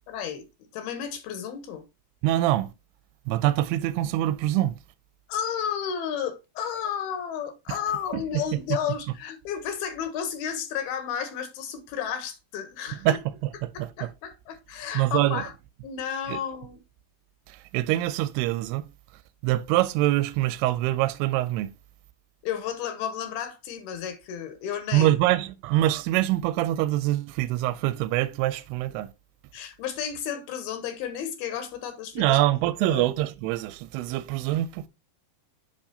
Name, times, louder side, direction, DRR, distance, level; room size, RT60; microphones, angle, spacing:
voice 1, 0.1-0.4 0.7-1.8 5.3-13.2 13.7-15.5 15.8-16.8 22.4-25.2 29.5-32.4 32.8-33.1, left 8 dB, 75° left, 2.9 m, -32 dB
voice 2, 2.2-2.7 3.3-4.7 8.1-8.2 13.0-13.2 13.6-14.1 14.9-15.4 16.3-16.4 17.5-18.9 19.4-21.7 24.9-29.1 32.2-34.9, right 15 dB, 85° right, 2.5 m, -24 dB
8.4 x 5.9 x 2.8 m
omnidirectional pair, 4.7 m